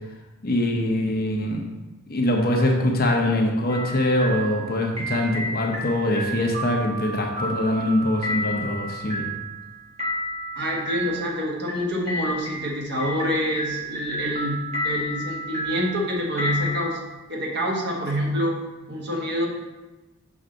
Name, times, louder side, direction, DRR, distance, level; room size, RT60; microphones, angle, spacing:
voice 1, 0.4-1.6 2.1-9.3, left 1 dB, 45° left, 1 dB, 0.9 m, -23 dB
sound 1, 3.7-16.9, equal, 30° right, 1.8 m, -32 dB
voice 2, 10.5-14.6 14.8-17.0 17.3-18.6 18.9-19.5, equal, 55° right, -2 dB, 1.3 m, -26 dB
6.4 x 4.6 x 3.9 m, 1.1 s
head